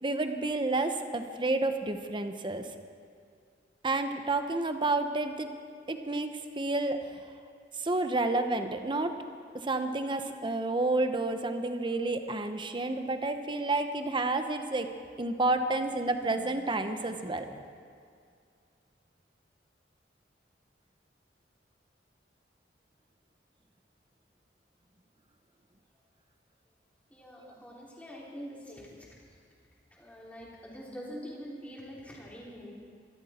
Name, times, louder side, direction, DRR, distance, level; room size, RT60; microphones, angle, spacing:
voice 1, 0.0-2.7 3.8-5.5 5.9-7.0 7.7-9.2 9.5-14.9 15.2-17.5, right 2 dB, 25° right, 7 dB, 1.0 m, -30 dB
voice 2, 27.1-29.0 29.9-32.7, equal, 10° left, -5 dB, 3.6 m, -44 dB
25.0 x 12.5 x 4.4 m, 2.3 s
head